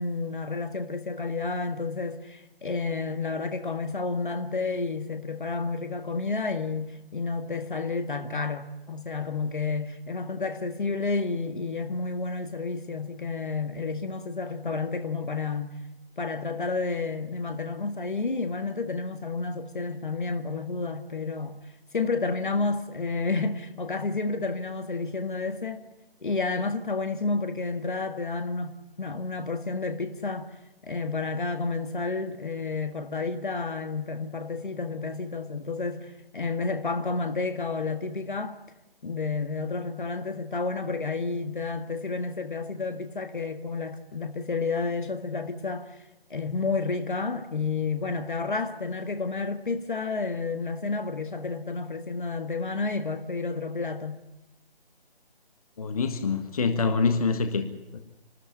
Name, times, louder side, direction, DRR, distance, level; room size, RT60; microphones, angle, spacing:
voice 1, 0.0-15.8 16.2-21.6 21.9-25.8 26.2-30.5 30.8-38.6 39.0-46.0 46.3-54.2, left 4 dB, 55° left, 1.8 m, -30 dB
voice 2, 55.8-57.6 57.9-58.0, left 4 dB, 35° left, 1.6 m, -25 dB
26.0 x 13.0 x 9.8 m
figure-of-eight pair, 150°, 30 cm